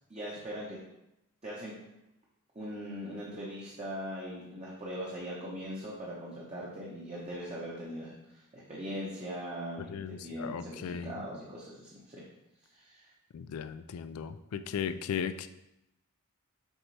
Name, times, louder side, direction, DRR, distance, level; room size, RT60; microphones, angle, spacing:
voice 1, 0.1-0.8 1.4-1.7 2.5-12.2 12.7-13.1, equal, 30° right, -5 dB, 0.9 m, -40 dB
voice 2, 9.9-11.1 13.3-15.5, left 7 dB, 75° left, 11 dB, 0.4 m, -36 dB
6.4 x 4.4 x 3.3 m, 0.89 s
head